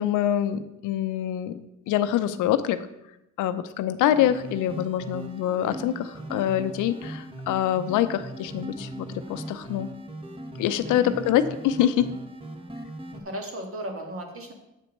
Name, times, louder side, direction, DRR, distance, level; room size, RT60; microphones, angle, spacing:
voice 1, 0.0-1.6 1.9-2.8 3.4-9.9 10.6-12.1, left 11 dB, 90° left, 11 dB, 0.6 m, -25 dB
sound 1, 4.0-13.2, right 1 dB, 20° right, 1.2 m, -39 dB
voice 2, 10.8-11.2 13.1-14.5, equal, 45° right, 3 dB, 2.0 m, -35 dB
8.2 x 4.4 x 6.5 m, 0.87 s
cardioid pair, 90°, 30 cm